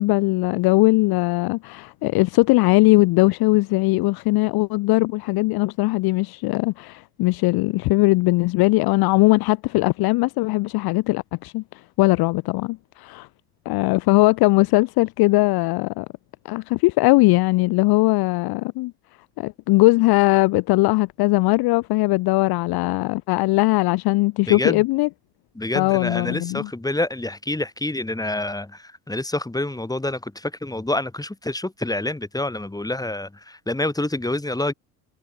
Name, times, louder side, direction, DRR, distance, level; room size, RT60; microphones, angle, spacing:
voice 1, 0.0-13.3 13.7-16.1 16.4-18.9 19.4-25.1 25.7-26.7, left 22 dB, 50° left, 0.8 m, -20 dB
voice 2, 24.5-24.8 25.6-34.7, left 2 dB, 5° left, 4.0 m, -27 dB
hypercardioid pair, 70°, 49 cm